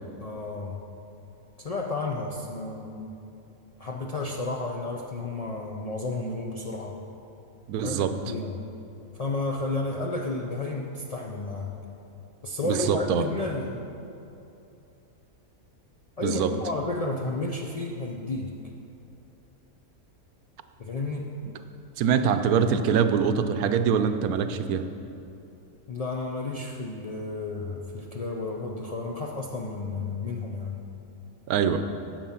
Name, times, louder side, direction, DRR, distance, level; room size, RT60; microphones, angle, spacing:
voice 1, 0.2-0.8 1.6-3.2 3.8-7.0 7.8-8.6 9.1-11.7 12.4-13.8 16.2-18.5 20.8-21.3 25.9-30.8, left 2 dB, 70° left, 0 dB, 0.3 m, -32 dB
voice 2, 7.7-8.1 12.6-13.2 16.2-16.5 22.0-24.9 31.5-31.8, right 7 dB, 80° right, 9 dB, 1.1 m, -24 dB
9.2 x 7.4 x 5.8 m, 2.8 s
omnidirectional pair, 1.6 m